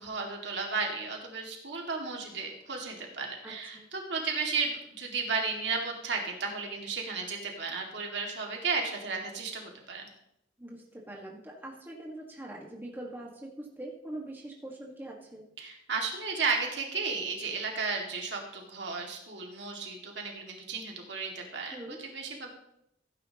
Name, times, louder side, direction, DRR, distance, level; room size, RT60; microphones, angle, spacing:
voice 1, 0.0-10.0 15.6-22.5, right 4 dB, 65° right, 1 dB, 2.2 m, -34 dB
voice 2, 3.4-3.9 10.6-15.4 21.7-22.0, right 1 dB, 10° right, -2 dB, 1.6 m, -43 dB
15.5 x 9.6 x 3.0 m, 0.79 s
head